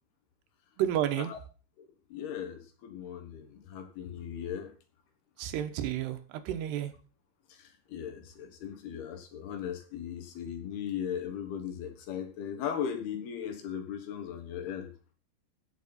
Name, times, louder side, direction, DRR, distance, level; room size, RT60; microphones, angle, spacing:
voice 1, 0.8-1.3 5.4-6.9, right 11 dB, 90° right, 9 dB, 3.1 m, -31 dB
voice 2, 2.1-4.7 7.5-14.9, left 8 dB, 70° left, 6 dB, 3.4 m, -38 dB
16.0 x 6.5 x 4.1 m, 0.36 s
omnidirectional pair, 4.7 m